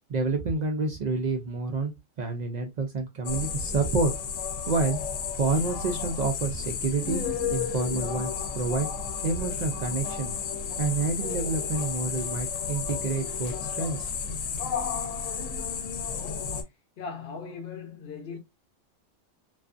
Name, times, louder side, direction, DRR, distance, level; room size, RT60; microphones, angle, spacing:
voice 1, 0.1-1.9 2.2-4.1 4.7-5.0 5.4-8.9 9.2-10.4 10.8-14.1, right 3 dB, 90° right, 0.3 m, -28 dB
sound 1, 3.3-16.6, left 6 dB, 85° left, 0.9 m, -32 dB
voice 2, 17.0-18.4, left 5 dB, 55° left, 0.8 m, -38 dB
2.4 x 2.4 x 2.2 m
omnidirectional pair, 1.3 m